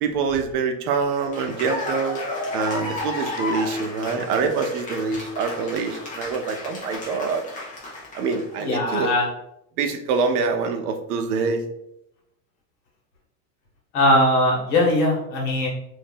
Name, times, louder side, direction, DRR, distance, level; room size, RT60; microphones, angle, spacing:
voice 1, 0.0-2.2 2.5-7.4 8.1-9.1 9.8-11.6, right 5 dB, 85° right, 6 dB, 0.8 m, -25 dB
Cheering / Applause, 1.1-8.6, left 2 dB, 15° left, 0.5 m, -33 dB
voice 2, 8.6-9.3 13.9-15.7, left 1 dB, 50° left, -2 dB, 1.4 m, -20 dB
2.7 x 2.7 x 3.7 m, 0.79 s
supercardioid pair, 165°, 45 cm